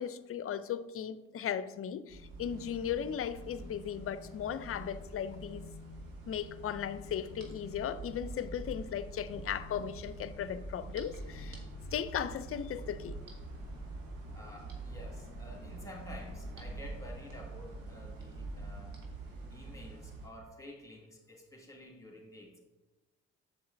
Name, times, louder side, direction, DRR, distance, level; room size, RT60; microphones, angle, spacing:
voice 1, 0.0-5.7 6.3-11.6 11.9-13.2, left 9 dB, 40° left, 0.5 m, -37 dB
sound 1, 2.1-20.3, right 2 dB, 90° right, 1.3 m, -45 dB
voice 2, 14.3-19.0 19.5-22.6, left 1 dB, 10° left, 2.0 m, -51 dB
7.7 x 7.5 x 2.7 m
hypercardioid pair, 55°, 36 cm